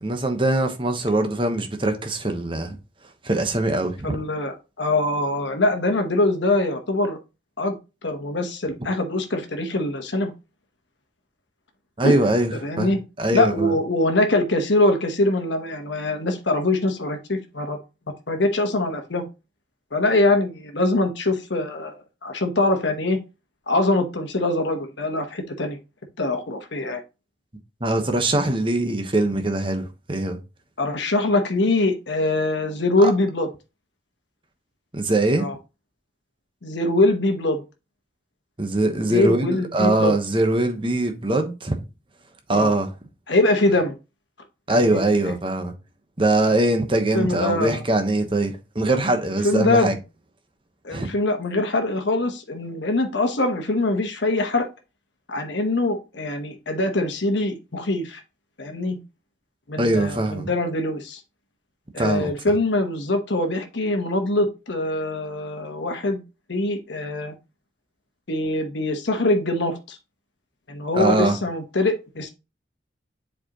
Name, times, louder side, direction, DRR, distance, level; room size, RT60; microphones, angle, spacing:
voice 1, 0.0-2.8 3.2-4.2 12.0-12.9 13.2-13.7 27.8-30.4 33.0-33.1 34.9-35.5 38.6-41.8 42.5-42.9 44.7-45.7 46.2-49.9 50.9-51.1 59.8-60.5 62.0-62.3 70.9-71.4, right 2 dB, 30° right, 1.1 m, -22 dB
voice 2, 4.0-7.2 7.6-7.7 8.0-10.3 12.0-12.2 12.6-13.0 13.3-17.8 18.3-19.3 19.9-23.2 23.7-25.8 26.2-27.0 30.8-33.5 35.4-35.6 36.6-37.6 39.1-40.2 42.5-42.7 43.3-43.9 44.7-45.3 46.5-46.6 47.1-47.8 49.4-50.0 50.8-54.7 55.3-58.2 58.6-59.0 59.7-61.2 61.9-66.2 66.5-67.3 68.3-70.0 70.7-72.3, left 2 dB, 70° left, 1.1 m, -23 dB
7.6 x 4.5 x 2.9 m
head